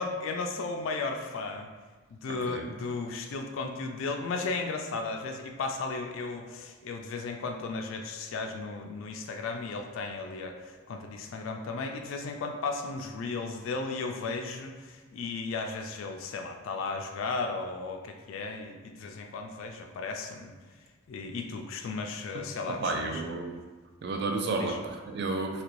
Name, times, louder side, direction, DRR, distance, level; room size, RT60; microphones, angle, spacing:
voice 1, 0.0-1.7 2.1-20.5 21.1-23.2 24.6-24.8, left 3 dB, 70° left, 3 dB, 0.3 m, -35 dB
voice 2, 2.3-2.7 22.3-23.6 24.0-25.6, right 3 dB, 55° right, 3 dB, 0.4 m, -32 dB
2.9 x 2.5 x 3.1 m, 1.4 s
head